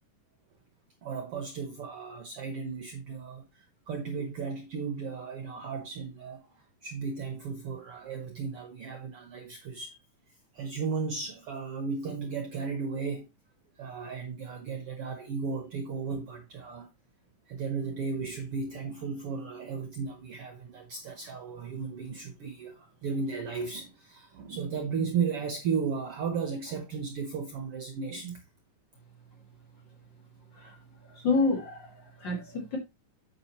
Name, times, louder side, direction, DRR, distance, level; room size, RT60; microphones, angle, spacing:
voice 1, 1.0-10.0 10.5-13.3 13.8-16.9 17.5-28.4, right 5 dB, 65° right, 1.5 m, -35 dB
voice 2, 31.1-32.8, left 3 dB, 40° left, 2.2 m, -29 dB
8.7 x 7.1 x 2.9 m
omnidirectional pair, 3.7 m